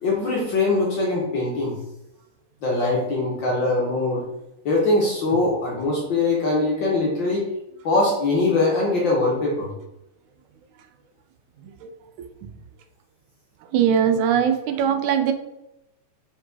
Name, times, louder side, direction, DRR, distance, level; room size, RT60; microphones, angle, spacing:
voice 1, 0.0-1.8 2.6-4.2 4.6-7.5 7.8-9.7, left 2 dB, 60° left, -3 dB, 1.2 m, -22 dB
voice 2, 13.7-15.3, right 8 dB, 85° right, 7 dB, 2.1 m, -20 dB
5.3 x 4.5 x 4.0 m, 0.88 s
omnidirectional pair, 3.4 m